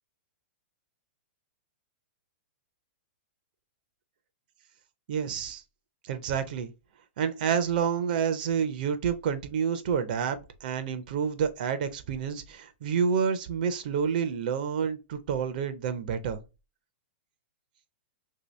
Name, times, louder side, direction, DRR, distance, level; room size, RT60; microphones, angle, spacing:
voice 1, 5.1-5.6 6.0-6.7 7.2-16.4, right 7 dB, 45° right, 0.4 m, -29 dB
2.9 x 2.7 x 3.0 m
hypercardioid pair, 165°, 6 cm